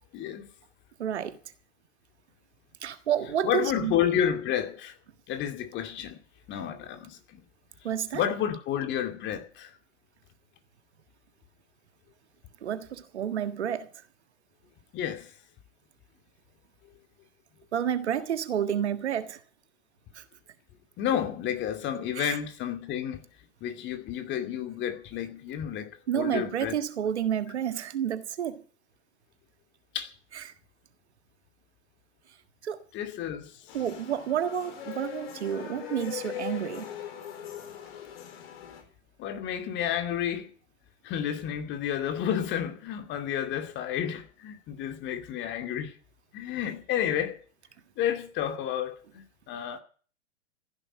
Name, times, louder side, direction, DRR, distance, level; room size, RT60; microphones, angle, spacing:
voice 1, 0.1-0.5 3.4-5.0 5.3-6.2 6.5-7.2 8.1-9.8 14.9-15.3 21.0-23.2 23.6-26.8 29.9-30.1 32.9-33.7 39.2-40.5 41.0-45.9 46.3-47.4 48.0-49.8, left 10 dB, 30° left, 2.4 m, -31 dB
voice 2, 1.0-1.4 2.8-3.9 7.8-8.2 12.6-13.9 17.7-19.4 20.1-20.2 22.2-22.4 26.1-28.6 30.3-30.4 32.6-32.8 33.7-36.9, right 9 dB, 65° right, 1.6 m, -30 dB
sound 1, 33.7-38.8, left 10 dB, 50° left, 4.4 m, -40 dB
15.5 x 11.0 x 7.6 m
figure-of-eight pair, 105°, 36 cm